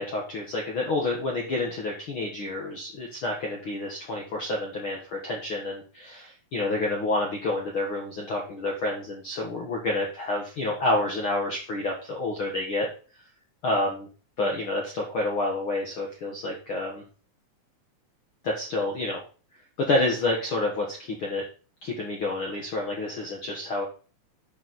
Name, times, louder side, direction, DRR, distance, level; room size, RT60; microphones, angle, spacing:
voice 1, 0.0-12.9 13.6-14.1 14.4-17.0 18.4-19.2 19.8-21.4 21.8-23.8, left 2 dB, 70° left, -1 dB, 1.2 m, -29 dB
11.0 x 4.1 x 4.0 m, 0.38 s
omnidirectional pair, 4.2 m